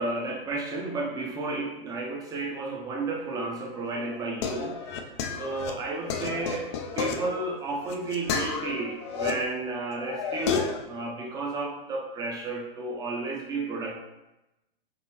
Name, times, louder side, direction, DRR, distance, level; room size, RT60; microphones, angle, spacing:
voice 1, 0.0-14.0, right 3 dB, 15° right, -1 dB, 0.6 m, -32 dB
sound 1, 3.9-9.3 9.7-10.8, left 6 dB, 30° left, 0.4 m, -32 dB
3.9 x 3.8 x 2.9 m, 0.97 s
figure-of-eight pair, 115°, 29 cm